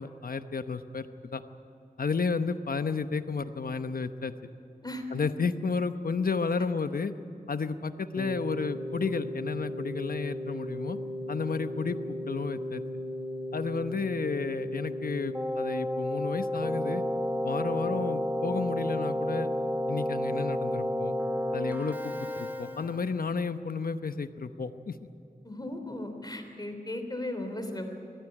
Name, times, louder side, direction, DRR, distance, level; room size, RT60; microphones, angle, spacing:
voice 1, 0.0-1.4 2.0-4.3 5.1-7.1 7.5-11.0 11.3-12.0 12.3-12.8 13.5-17.0 17.4-19.5 19.9-21.1 21.5-25.0, left 4 dB, 70° left, 10 dB, 1.0 m, -32 dB
Keyboard (musical), 8.2-23.2, left 1 dB, 10° right, 2.0 m, -33 dB
voice 2, 25.4-27.9, left 1 dB, 25° left, 5 dB, 3.3 m, -36 dB
22.5 x 15.0 x 9.8 m, 2.9 s
wide cardioid pair, 70°, 15 cm